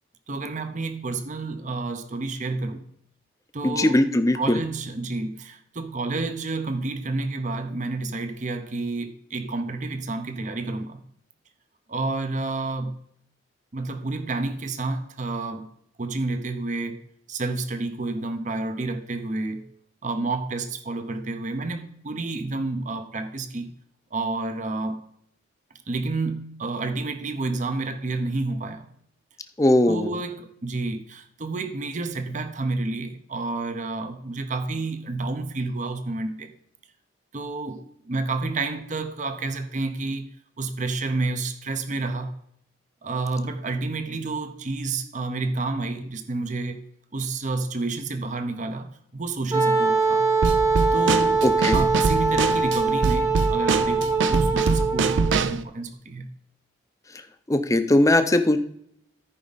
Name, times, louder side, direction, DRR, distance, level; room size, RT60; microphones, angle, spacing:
voice 1, 0.3-2.8 3.5-4.0 4.4-11.0 11.9-12.9 13.7-15.7 16.0-17.0 17.3-19.7 20.0-23.7 24.1-25.0 25.9-28.9 29.9-36.5 37.3-40.3 40.6-42.3 43.0-46.8 47.1-50.3 50.9-56.3, right 3 dB, 40° right, 0.7 m, -30 dB
voice 2, 3.6-4.6 29.6-30.1 51.4-51.8 57.5-58.6, left 1 dB, 15° left, 0.6 m, -20 dB
Wind instrument woodwind instrument, 49.5-55.5, right 4 dB, 15° right, 1.0 m, -22 dB
Drum kit / Snare drum, 50.4-55.6, right 4 dB, 75° right, 0.5 m, -24 dB
14.0 x 5.0 x 4.0 m
head